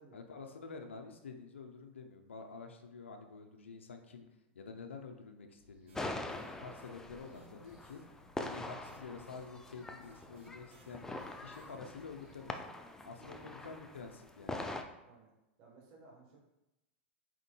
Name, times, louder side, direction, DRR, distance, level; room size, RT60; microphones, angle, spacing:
voice 1, 0.1-4.3 4.5-6.3 6.6-8.0 8.4-11.1 11.4-12.6 13.0-14.6, left 4 dB, 90° left, 5 dB, 0.5 m, -49 dB
sound 1, 5.6-12.5, left 2 dB, 15° right, 1.3 m, -65 dB
sound 2, 5.9-14.8, left 2 dB, 10° left, 0.3 m, -44 dB
sound 3, 5.9-6.9 7.2-12.2, right 3 dB, 85° right, 0.7 m, -66 dB
voice 2, 13.2-13.5 15.0-15.3 15.6-16.4, right 3 dB, 50° right, -2 dB, 1.0 m, -59 dB
4.4 x 3.7 x 2.2 m, 0.92 s
hypercardioid pair, 105°, 6 cm